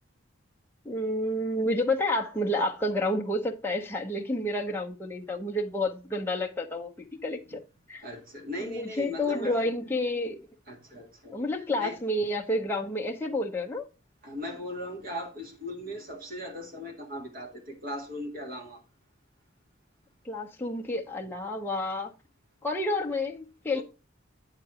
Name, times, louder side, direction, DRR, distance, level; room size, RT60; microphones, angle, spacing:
voice 1, 0.8-7.6 7.9-8.0 8.6-10.4 11.3-13.9 20.2-22.1 22.6-23.8, left 1 dB, 10° left, 0.7 m, -30 dB
voice 2, 8.0-9.5 10.7-11.4 11.8-11.9 14.2-18.8 23.7-23.8, equal, 50° right, 1.8 m, -38 dB
9.1 x 3.9 x 4.7 m
head